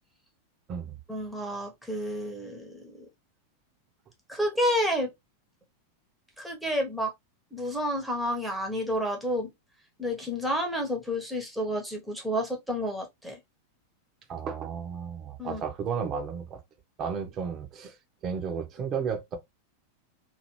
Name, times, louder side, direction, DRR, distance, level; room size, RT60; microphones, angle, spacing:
voice 1, 1.1-3.1 4.3-5.1 6.4-7.1 7.5-9.5 10.0-13.4 15.4-15.6, equal, ahead, 1.1 m, -30 dB
voice 2, 14.3-16.6 17.0-17.9 18.2-19.4, right 6 dB, 30° right, 0.9 m, -33 dB
2.8 x 2.7 x 3.1 m
figure-of-eight pair, 90°, 0 cm